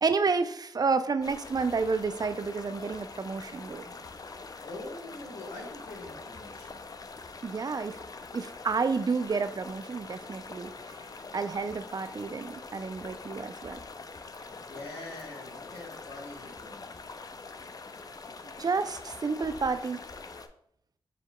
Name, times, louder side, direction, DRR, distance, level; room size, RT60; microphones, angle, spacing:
voice 1, 0.0-3.9 7.4-8.0 8.3-11.0 11.3-13.8 18.4-20.0, right 4 dB, 40° right, 10 dB, 0.4 m, -30 dB
sound 1, 1.2-20.5, left 4 dB, 40° left, 0.4 m, -44 dB
voice 2, 4.6-6.9 14.4-17.1, left 2 dB, 90° left, -1 dB, 1.1 m, -44 dB
6.9 x 2.8 x 2.2 m, 0.69 s
supercardioid pair, 40°, 10 cm